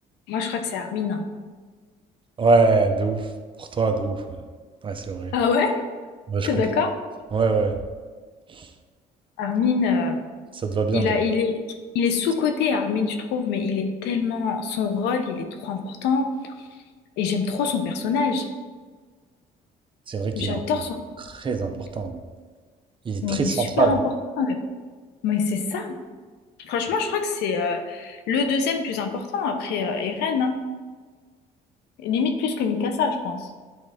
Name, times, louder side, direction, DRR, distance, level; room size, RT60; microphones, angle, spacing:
voice 1, 0.3-1.3 5.3-5.8 6.4-7.0 9.4-10.2 10.9-11.6 11.9-16.5 17.2-18.5 20.3-21.0 23.2-24.0 24.4-24.6 25.2-26.0 26.6-30.6 32.0-33.5, left 5 dB, 85° left, 6 dB, 0.8 m, -25 dB
voice 2, 2.4-3.3 3.6-4.2 4.8-5.3 6.3-6.5 7.3-7.8 8.5-8.7 10.5-11.1 20.1-20.6 21.4-22.2 23.1-24.0, right 4 dB, 30° right, 5 dB, 0.6 m, -23 dB
8.7 x 3.8 x 3.5 m, 1.5 s
cardioid pair, 110°, 17 cm